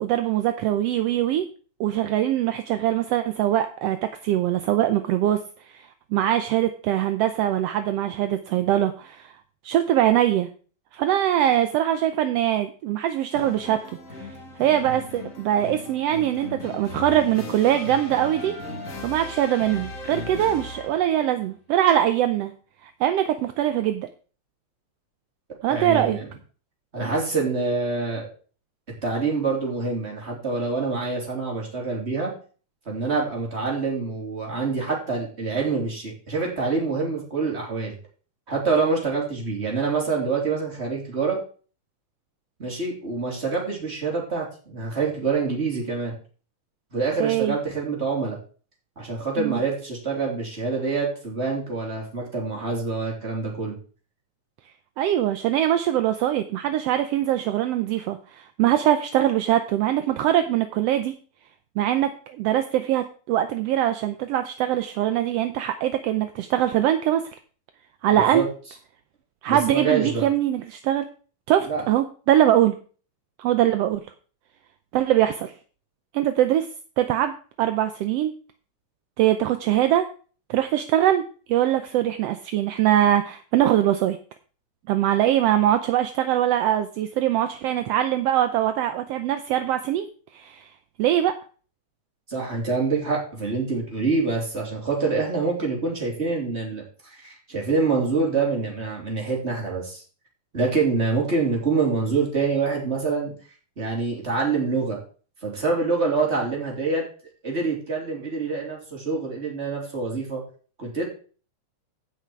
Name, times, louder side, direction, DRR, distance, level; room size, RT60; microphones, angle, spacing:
voice 1, 0.0-1.4 1.8-9.3 9.6-10.5 10.9-13.8 14.2-14.3 14.6-18.5 19.0-22.5 22.8-24.1 25.6-26.2 47.2-47.6 49.4-49.6 55.0-61.2 61.8-67.2 68.0-68.4 69.4-71.0 71.5-72.7 73.4-74.1 74.9-75.5 76.1-76.7 77.0-78.3 79.2-80.1 80.5-81.2 81.5-84.2 84.9-90.7 91.0-91.4, right 12 dB, 75° right, 9 dB, 1.5 m, -22 dB
sound 1, 13.3-21.2, left 2 dB, 30° left, 1.8 m, -37 dB
voice 2, 25.7-26.3 26.9-28.3 29.0-32.3 32.8-37.9 38.5-41.4 42.6-46.1 46.9-48.4 49.0-53.8 68.1-68.5 69.5-70.3 71.7-71.8 92.3-100.0 100.5-103.3 103.8-105.0 105.4-107.0 107.4-110.4 110.8-111.0, right 4 dB, 20° right, -1 dB, 3.3 m, -26 dB
16.0 x 5.9 x 4.6 m, 0.40 s
omnidirectional pair, 3.4 m